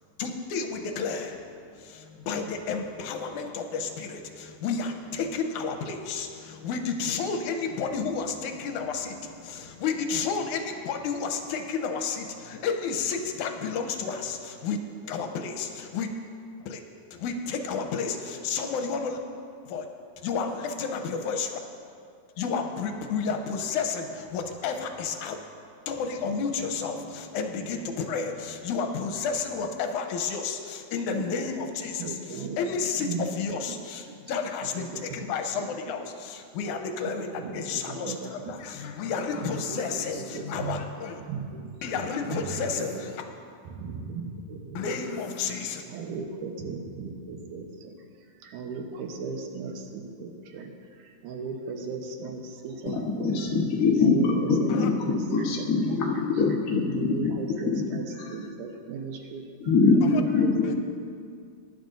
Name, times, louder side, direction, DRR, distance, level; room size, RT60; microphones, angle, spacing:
voice 1, 0.2-14.8 15.0-16.1 16.6-16.8 17.1-19.2 19.7-19.9 20.2-21.6 22.4-25.4 25.9-41.2 41.8-43.2 44.7-45.8 54.7-54.9 60.6-60.8, left 5 dB, 85° left, 4 dB, 2.2 m, -31 dB
voice 2, 32.0-32.7 33.0-33.8 34.8-35.7 37.0-38.6 39.4-40.8 41.2-43.1 43.6-44.9 45.4-45.6 45.9-47.9 48.4-53.5 54.0-56.1 56.8-59.4 59.9-60.8, right 4 dB, 85° right, 3 dB, 2.5 m, -37 dB
voice 3, 52.9-54.9 55.3-57.3 58.2-58.3 59.6-60.6, left 4 dB, 70° left, -2 dB, 0.8 m, -23 dB
21.0 x 11.0 x 2.6 m, 2.3 s
omnidirectional pair, 3.5 m